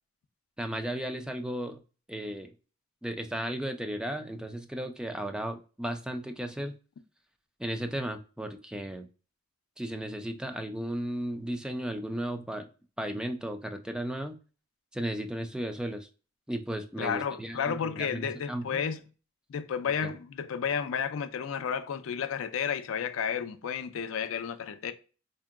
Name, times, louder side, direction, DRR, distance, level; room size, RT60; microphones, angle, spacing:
voice 1, 0.6-1.8 2.1-2.5 3.0-6.7 7.6-9.1 9.8-12.7 13.0-14.4 14.9-16.1 16.5-18.8 20.0-20.1, right 1 dB, 5° right, 0.3 m, -35 dB
voice 2, 17.0-19.0 19.5-24.9, left 7 dB, 85° left, 0.4 m, -32 dB
4.4 x 2.7 x 2.4 m
head